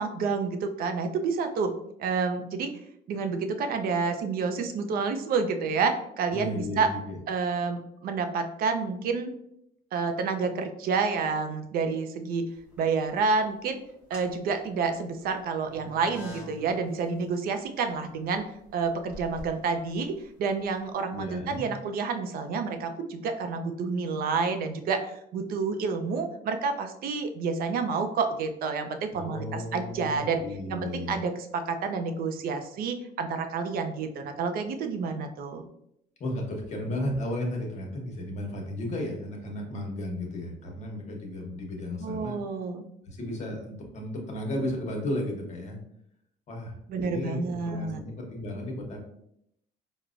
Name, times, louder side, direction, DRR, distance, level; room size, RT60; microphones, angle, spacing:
voice 1, 0.0-1.7 2.0-2.7 3.1-6.9 7.3-9.3 9.9-12.5 12.8-13.8 14.1-18.4 18.7-30.4 30.7-35.6 42.0-42.8 46.9-48.0, right 4 dB, 60° right, 7 dB, 0.5 m, -29 dB
voice 2, 6.3-7.2 21.1-21.7 29.1-31.1 36.2-42.4 43.1-45.8 46.5-46.7 47.0-49.0, left 1 dB, 45° left, 1 dB, 1.0 m, -34 dB
sound 1, 12.5-13.2 13.9-20.8, equal, 5° right, 1.1 m, -48 dB
4.6 x 2.1 x 2.4 m, 0.76 s
cardioid pair, 110°, 17 cm